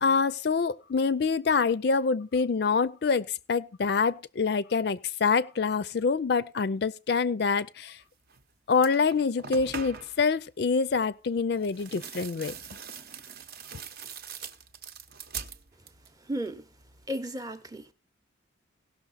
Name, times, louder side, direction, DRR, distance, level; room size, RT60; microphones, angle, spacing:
voice 1, 0.0-8.0 8.7-12.6, left 5 dB, 55° left, 0.4 m, -26 dB
sound 1, 8.3-8.4 8.7-10.2 11.6-16.2 16.5-17.1, right 6 dB, 50° right, 0.8 m, -42 dB
voice 2, 16.2-16.7 17.1-17.9, equal, 20° right, 0.7 m, -34 dB
17.0 x 6.2 x 4.0 m
head